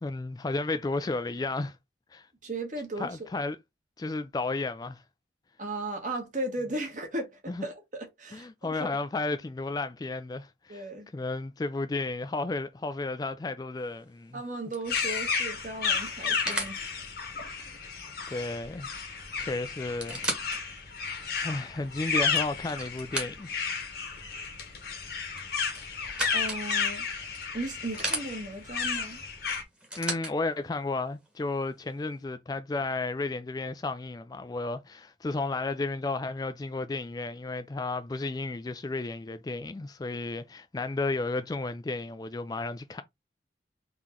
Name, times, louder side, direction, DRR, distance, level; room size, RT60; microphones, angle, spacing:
voice 1, 0.0-1.8 2.1-2.3 3.0-3.6 4.0-5.0 7.5-7.6 8.3-14.4 18.3-18.9 19.4-20.2 21.4-23.5 30.0-43.0, left 3 dB, 20° left, 0.3 m, -33 dB
voice 2, 2.4-3.2 5.6-8.9 10.7-11.1 14.3-16.9 18.3-18.5 26.3-27.1 27.5-29.2, right 2 dB, 45° right, 1.4 m, -36 dB
sound 1, 13.8-14.1 14.7-16.8 18.8-18.9 19.2-19.3 19.8-20.6 21.2-21.3 22.0-23.6 25.3-26.6 27.3-28.3 29.5-30.3 31.3-31.4, right 1 dB, 5° right, 1.2 m, -36 dB
sound 2, 14.9-29.6, left 5 dB, 55° left, 1.1 m, -33 dB
3.8 x 3.0 x 3.6 m
head